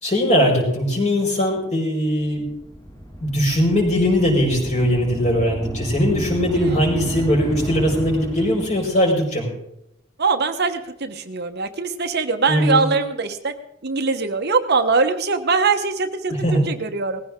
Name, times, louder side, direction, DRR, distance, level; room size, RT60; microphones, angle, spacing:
voice 1, 0.0-2.5 3.2-9.5 12.5-12.8 16.3-16.6, equal, 35° left, -1 dB, 5.5 m, -20 dB
sound 1, 2.2-9.2, equal, 20° left, 2.2 m, -32 dB
voice 2, 10.2-13.5 13.8-16.4 16.7-17.2, right 4 dB, 55° right, 7 dB, 1.1 m, -22 dB
19.5 x 15.5 x 3.7 m, 0.78 s
head